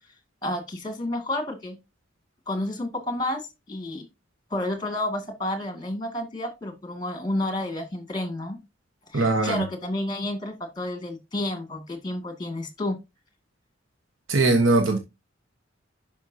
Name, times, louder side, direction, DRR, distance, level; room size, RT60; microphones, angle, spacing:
voice 1, 0.4-1.8 2.5-3.4 3.7-4.1 4.5-8.6 9.1-13.0, left 1 dB, 20° left, 2.3 m, -30 dB
voice 2, 9.1-9.6 14.3-15.0, right 2 dB, 90° right, 1.3 m, -20 dB
11.0 x 5.4 x 2.8 m
head